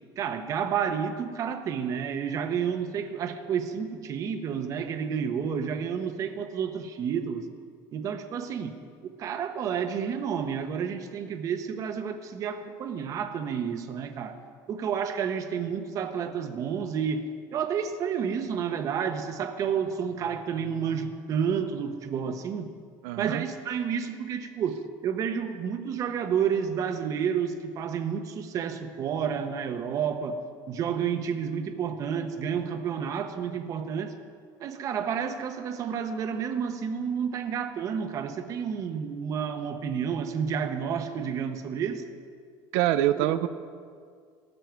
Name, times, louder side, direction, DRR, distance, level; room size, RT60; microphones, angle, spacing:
voice 1, 0.2-7.4 7.9-8.7 9.2-14.4 14.7-17.2 17.5-22.7 23.2-30.4 30.7-34.1 34.6-42.0 43.2-43.3, right 7 dB, 35° right, 8 dB, 1.0 m, -30 dB
voice 2, 23.0-23.4 42.7-43.5, right 13 dB, 90° right, 11 dB, 0.5 m, -25 dB
15.5 x 13.0 x 4.6 m, 2.1 s
cardioid pair, 165°, 9 cm